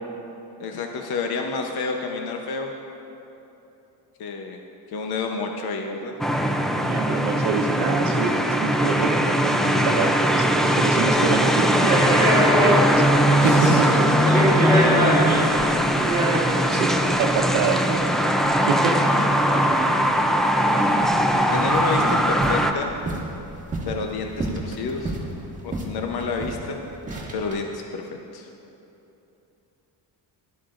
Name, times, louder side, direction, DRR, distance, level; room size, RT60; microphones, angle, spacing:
voice 1, 0.6-2.7 4.2-4.6 4.9-6.1 13.4-16.7 20.7-20.8 21.5-22.9 23.9-25.2 25.6-26.8 27.3-28.5, left 4 dB, 55° left, 2 dB, 0.9 m, -30 dB
sound 1, 6.2-22.7, equal, ahead, 0.4 m, -20 dB
voice 2, 6.9-13.1 13.4-14.1 15.7-15.8 16.1-16.2 16.7-18.0 18.7-19.0, right 5 dB, 75° right, 2 dB, 1.1 m, -26 dB
sound 2, 11.0-11.2 11.8-13.2 13.4-13.5 14.1-16.8 17.7-17.8 19.5-20.0 20.5-20.6 20.8-21.3 21.5-22.0 22.4-22.6 23.1-24.0 24.4-25.3 25.7-25.9 26.2-26.6 27.1-27.5, right 1 dB, 15° right, 1.5 m, -25 dB
18.5 x 12.5 x 2.5 m, 3.0 s
cardioid pair, 150°, 46 cm